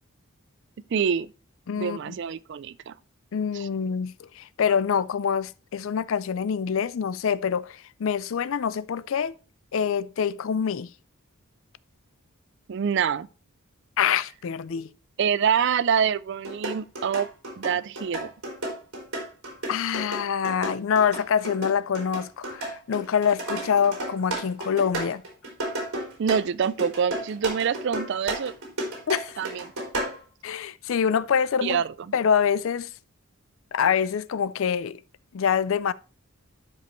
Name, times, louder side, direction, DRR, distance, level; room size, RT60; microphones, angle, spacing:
voice 1, 0.9-1.3 1.8-2.9 3.5-3.7 12.7-13.3 15.2-17.3 17.6-18.3 26.2-28.5 29.4-29.7 31.6-31.9, right 7 dB, 50° right, 0.3 m, -25 dB
voice 2, 1.7-2.2 3.3-9.3 9.7-10.9 14.0-14.9 19.7-25.2 29.1-29.4 30.4-31.8 32.1-32.9 33.7-35.0 35.3-35.9, left 7 dB, 60° left, 0.4 m, -25 dB
sound 1, 16.4-30.2, right 1 dB, 75° right, 3.4 m, -33 dB
12.0 x 5.2 x 3.1 m
head